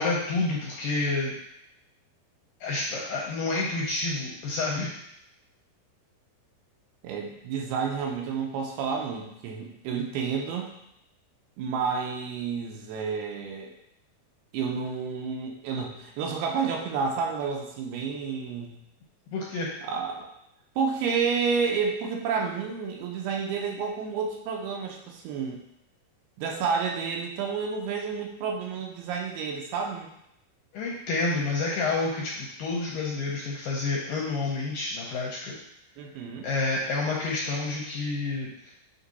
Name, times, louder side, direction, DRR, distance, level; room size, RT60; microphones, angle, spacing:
voice 1, 0.0-1.3 2.6-5.0 19.3-19.7 30.7-35.6 36.4-38.7, left 3 dB, 80° left, -3 dB, 2.0 m, -29 dB
voice 2, 7.0-10.7 11.6-13.7 14.5-18.8 19.8-20.3 20.8-25.6 26.4-30.1 36.0-36.5, right 5 dB, 80° right, 1 dB, 2.5 m, -30 dB
8.1 x 3.0 x 4.0 m, 0.78 s
omnidirectional pair, 4.8 m